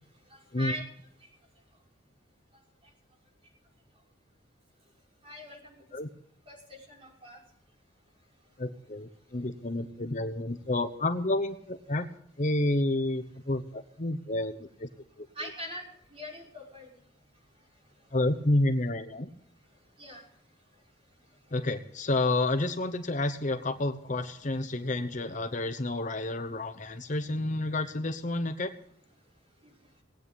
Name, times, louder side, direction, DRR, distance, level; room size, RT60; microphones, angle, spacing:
voice 1, 5.2-5.8 6.5-7.4 15.4-15.8 16.1-16.9 20.0-20.2, equal, 30° right, -2 dB, 6.0 m, -41 dB
voice 2, 8.6-12.0 12.4-14.9 15.4-15.5 18.1-19.3 21.5-28.7, left 2 dB, 40° left, 8 dB, 0.9 m, -30 dB
19.0 x 9.1 x 8.3 m, 0.68 s
head